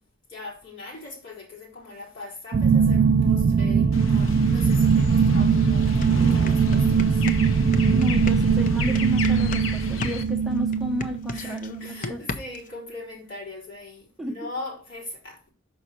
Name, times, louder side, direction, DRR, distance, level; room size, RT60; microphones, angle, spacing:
voice 1, 0.3-7.2 9.8-9.9 11.3-15.5, left 2 dB, 65° left, 3.9 m, -40 dB
sound 1, 2.5-12.0, right 5 dB, 50° right, 0.3 m, -21 dB
sound 2, 3.9-10.2, left 3 dB, 85° left, 0.8 m, -35 dB
sound 3, 5.5-5.6 5.9-9.7 10.0-12.7, left 3 dB, 40° left, 0.6 m, -34 dB
voice 2, 7.9-12.2 14.2-14.4, left 1 dB, ahead, 0.7 m, -32 dB
6.1 x 5.1 x 4.3 m
head